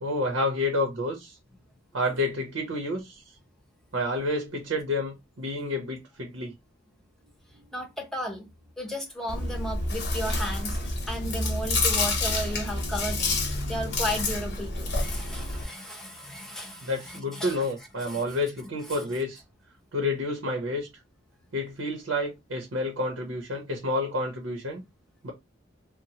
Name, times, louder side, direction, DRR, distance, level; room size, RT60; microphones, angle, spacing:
voice 1, 0.0-1.4 1.9-3.2 3.9-6.5 16.8-19.4 19.9-20.9 21.5-24.8 25.2-25.3, left 1 dB, 85° right, 0.8 m, -29 dB
voice 2, 7.5-8.5 8.8-17.6 18.1-18.2 18.9-19.0, equal, ahead, 0.7 m, -35 dB
Chewing mastication, 9.3-15.6, left 2 dB, 60° left, 0.8 m, -28 dB
2.9 x 2.1 x 2.8 m
head